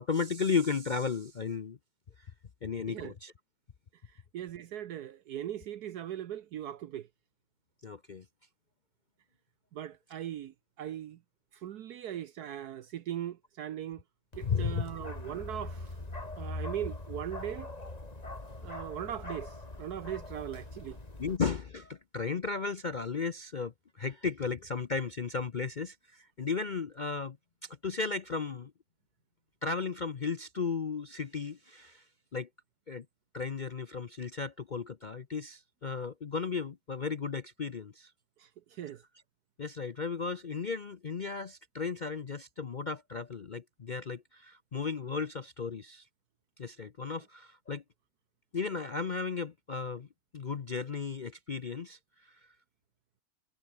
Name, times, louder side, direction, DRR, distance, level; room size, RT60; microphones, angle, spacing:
voice 1, 0.0-1.8 2.2-2.3 2.6-3.3 7.8-8.2 14.4-14.8 21.2-27.4 27.6-28.7 29.6-32.0 32.3-32.5 32.9-33.1 33.3-38.1 39.6-46.1 46.6-47.8 48.5-50.1 50.3-52.4, left 5 dB, 55° left, 0.5 m, -35 dB
voice 2, 4.0-7.1 9.7-11.2 11.5-14.0 14.4-16.0 16.4-17.7 18.6-21.0 38.4-39.0, right 11 dB, 70° right, 1.3 m, -39 dB
Bark, 14.3-21.4, left 2 dB, 20° left, 3.0 m, -42 dB
omnidirectional pair, 1.8 m